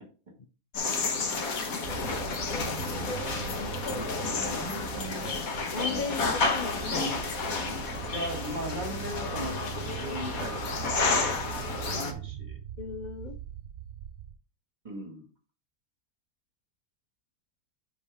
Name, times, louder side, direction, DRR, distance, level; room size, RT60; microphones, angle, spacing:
sound 1, 0.7-12.1, left 4 dB, 80° left, 1.7 m, -31 dB
sound 2, 1.8-14.3, right 11 dB, 65° right, 0.8 m, -41 dB
voice 1, 2.4-3.1 5.7-7.8 11.9-12.1 12.8-13.4, left 5 dB, 50° left, 0.5 m, -38 dB
voice 2, 4.3-5.4 5.8-6.4 8.1-10.9 11.5-12.6 14.8-15.3, equal, 30° right, 2.2 m, -39 dB
9.9 x 4.7 x 3.6 m
omnidirectional pair, 1.5 m